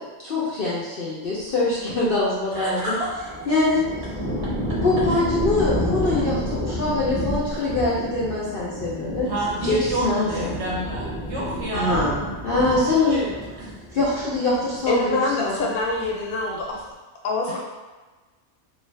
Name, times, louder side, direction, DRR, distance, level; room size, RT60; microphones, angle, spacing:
voice 1, 0.2-2.9 3.5-3.8 4.1-4.2 4.8-9.3 9.7-10.5 11.7-13.2 13.9-15.6, left 2 dB, 55° left, -8 dB, 0.6 m, -23 dB
sound 1, 2.5-15.3 15.6-16.3, equal, 15° right, 0.4 m, -30 dB
voice 2, 2.5-3.1 5.1-5.2 6.0-6.3 7.6-7.7 9.2-12.1 12.6-13.3 13.6-13.8 17.5-17.6, right 1 dB, 60° right, -4 dB, 0.8 m, -29 dB
voice 3, 14.9-16.8 17.2-17.6, left 3 dB, 80° left, -2 dB, 1.1 m, -25 dB
2.5 x 2.4 x 3.2 m, 1.3 s
omnidirectional pair, 1.5 m